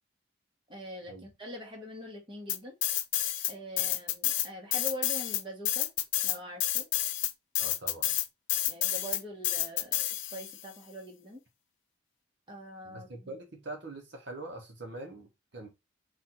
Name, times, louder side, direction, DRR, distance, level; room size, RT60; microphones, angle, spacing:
voice 1, 0.7-2.7 3.5-5.9 6.2-6.9 8.7-11.4 12.5-13.3, equal, 25° right, 1.3 m, -43 dB
sound 1, 2.5-3.5 3.8-10.6, left 13 dB, 65° left, 0.5 m, -29 dB
voice 2, 7.6-8.2 12.8-15.7, right 2 dB, 60° right, 1.0 m, -43 dB
4.2 x 2.5 x 4.3 m
head